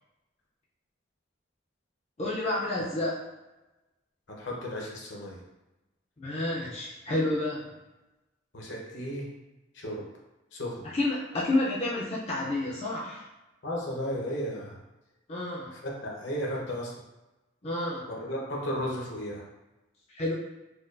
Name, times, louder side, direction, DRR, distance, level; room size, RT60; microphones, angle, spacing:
voice 1, 2.2-3.3 6.2-7.8 10.9-13.2 15.3-15.7 17.6-18.1 20.1-20.3, left 2 dB, 30° left, -6 dB, 0.5 m, -30 dB
voice 2, 4.3-5.4 8.5-9.3 9.7-10.0 10.5-10.9 13.6-14.8 15.8-16.9 18.1-19.4, equal, 70° left, -2 dB, 0.8 m, -34 dB
4.4 x 2.3 x 2.5 m, 1.0 s
head